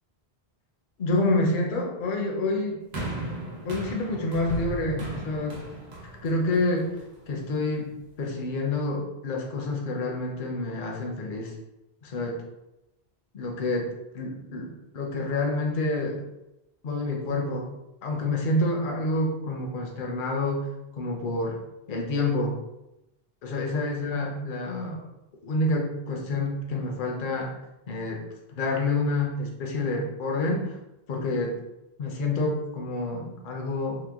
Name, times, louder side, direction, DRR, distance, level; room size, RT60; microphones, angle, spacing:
voice 1, 1.0-2.8 3.6-5.6 6.2-7.0 7.3-11.5 12.0-12.4 13.3-13.9 14.1-16.2 16.8-17.7 18.0-20.7 20.9-21.6 21.9-22.6 23.4-25.0 25.4-27.5 27.9-28.2 28.5-30.8 31.1-31.6 32.0-34.0, left 2 dB, 60° left, 0 dB, 0.7 m, -28 dB
sound 1, 2.9-7.3 8.1-8.2, right 1 dB, 85° right, 1.0 m, -36 dB
2.8 x 2.1 x 3.4 m, 0.92 s
omnidirectional pair, 1.0 m